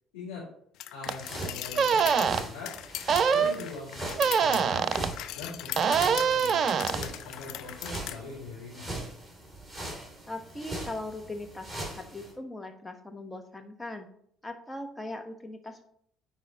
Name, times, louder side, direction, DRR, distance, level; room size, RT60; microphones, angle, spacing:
sound 1, 0.8-8.2, left 13 dB, 60° left, 0.4 m, -39 dB
voice 1, 0.9-2.7 3.3-4.8 5.3-6.6 6.9-9.0, left 4 dB, 80° left, -9 dB, 2.8 m, -42 dB
sound 2, 1.1-12.3, right 1 dB, 5° right, 3.0 m, -41 dB
sound 3, 1.1-1.2 1.8-2.4 3.1-3.6 4.2-5.1 5.8-7.0, right 6 dB, 45° right, 0.4 m, -24 dB
voice 2, 10.2-14.1 14.4-15.8, left 2 dB, 15° left, 6 dB, 1.1 m, -39 dB
9.2 x 4.7 x 2.9 m, 0.67 s
hypercardioid pair, 55°, 0 cm